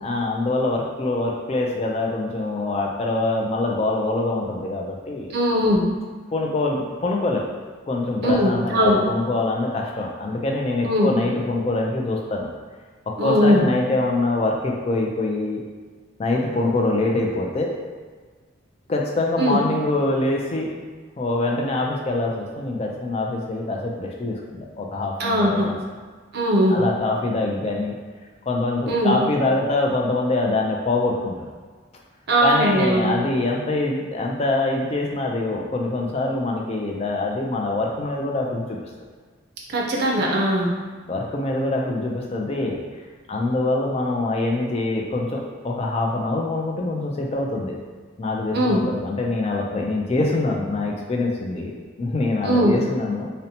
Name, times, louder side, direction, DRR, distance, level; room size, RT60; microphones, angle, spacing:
voice 1, 0.0-5.3 6.3-7.4 7.9-12.5 13.1-15.6 16.2-17.8 18.9-20.7 21.2-25.8 26.7-27.9 28.5-31.4 32.4-38.8 41.1-42.8 43.3-47.8 48.2-53.3, left 2 dB, 30° left, 0 dB, 0.3 m, -24 dB
voice 2, 5.3-5.8 8.2-9.0 10.8-11.1 13.2-13.6 19.4-19.6 25.2-25.7 26.3-26.8 28.9-29.2 32.3-33.2 39.7-40.7 48.5-48.8 52.4-52.7, equal, 50° right, -2 dB, 0.5 m, -19 dB
2.7 x 2.1 x 2.7 m, 1.4 s
head